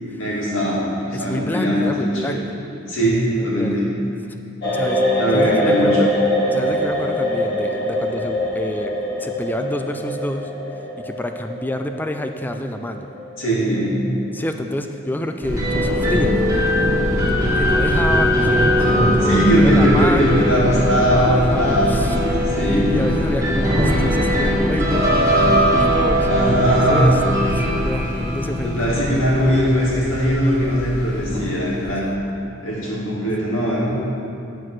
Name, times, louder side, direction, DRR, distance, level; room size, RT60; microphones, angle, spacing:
voice 1, 0.2-2.4 2.9-3.8 5.2-6.1 13.4-14.0 19.2-22.9 26.3-27.1 28.6-32.1 32.6-33.9, equal, 70° left, -6 dB, 2.4 m, -20 dB
voice 2, 1.1-2.6 3.3-3.8 4.7-5.0 5.3-6.1 6.5-8.9 9.2-10.5 11.0-13.1 14.3-17.0 17.5-20.4 21.1-22.2 22.6-26.3 26.7-29.7 31.8-32.2, left 1 dB, 10° left, 6 dB, 0.3 m, -28 dB
sound 1, 4.6-14.6 14.8-15.0, left 1 dB, 50° left, 1.8 m, -23 dB
sound 2, 15.4-31.9, equal, 15° right, 1.7 m, -20 dB
10.5 x 4.6 x 6.2 m, 2.6 s
head